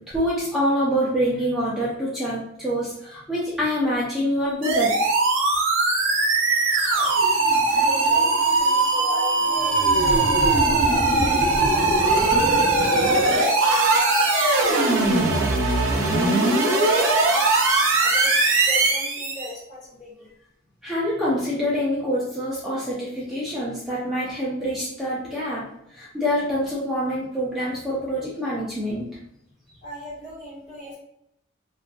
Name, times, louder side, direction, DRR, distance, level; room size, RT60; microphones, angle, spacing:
voice 1, 0.1-5.1 20.8-25.6 25.9-29.1, equal, ahead, -8 dB, 0.5 m, -26 dB
sound 1, 4.6-19.5, right 2 dB, 85° right, 0.6 m, -20 dB
voice 2, 6.4-6.9 7.7-14.2 14.6-17.5 18.0-18.3 18.6-20.3 29.8-31.0, left 1 dB, 40° left, -7 dB, 1.3 m, -37 dB
2.6 x 2.4 x 2.2 m, 0.78 s
head